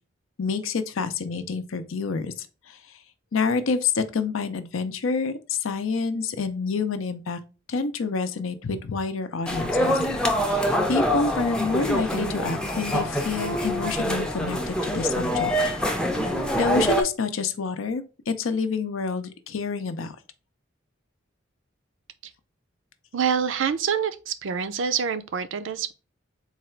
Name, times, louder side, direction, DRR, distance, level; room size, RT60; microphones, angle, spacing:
voice 1, 0.4-2.8 3.3-7.4 7.7-10.0 10.4-15.5 16.6-20.2, left 4 dB, 80° left, 0.5 m, -28 dB
sound 1, 9.5-17.0, equal, 5° left, 0.4 m, -25 dB
voice 2, 23.1-25.9, right 7 dB, 70° right, 0.4 m, -26 dB
4.0 x 2.3 x 4.3 m
head